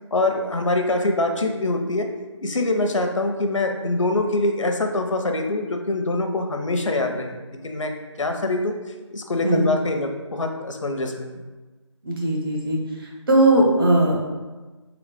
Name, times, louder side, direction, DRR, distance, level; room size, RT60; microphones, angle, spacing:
voice 1, 0.1-2.1 2.4-7.4 7.6-7.9 8.2-8.7 9.1-11.4, left 2 dB, 80° left, 4 dB, 0.7 m, -24 dB
voice 2, 12.0-12.8 13.3-14.2, right 1 dB, 45° right, -2 dB, 1.0 m, -18 dB
3.9 x 3.3 x 3.4 m, 1.2 s
figure-of-eight pair, 170°, 16 cm